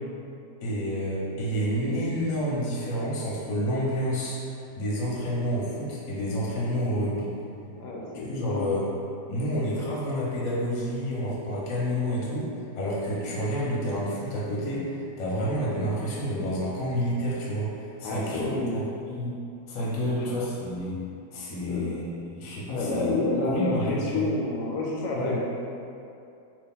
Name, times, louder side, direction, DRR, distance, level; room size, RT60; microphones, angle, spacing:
voice 1, 0.6-4.4 4.8-7.3 8.1-8.8 9.3-12.5 12.8-17.7 18.0-19.3 19.7-21.0 21.3-23.2 23.4-24.3 25.1-25.4, equal, 55° left, -6 dB, 1.1 m, -29 dB
voice 2, 7.7-8.6 18.0-18.7 20.2-20.3 21.7-21.9 22.7-25.4, left 2 dB, 85° left, -3 dB, 1.2 m, -29 dB
2.8 x 2.8 x 3.6 m, 2.6 s
omnidirectional pair, 1.8 m